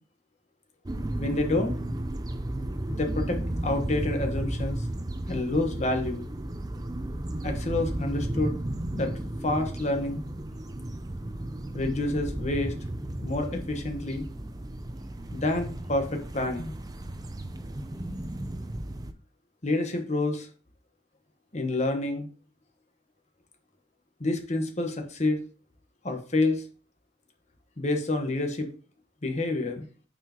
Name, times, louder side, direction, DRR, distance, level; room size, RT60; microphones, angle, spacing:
sound 1, 0.9-19.1, right 1 dB, 20° right, 0.5 m, -34 dB
voice 1, 1.2-1.7 2.9-4.8 5.3-6.3 7.4-8.6 8.9-9.1 9.4-10.2 11.7-12.7 13.2-14.3 15.3-16.7 19.6-20.5 21.5-22.3 24.2-25.4 26.0-26.6 27.8-28.7 29.2-29.8, left 2 dB, 40° left, 4 dB, 1.3 m, -28 dB
9.1 x 4.7 x 3.0 m, 0.38 s
head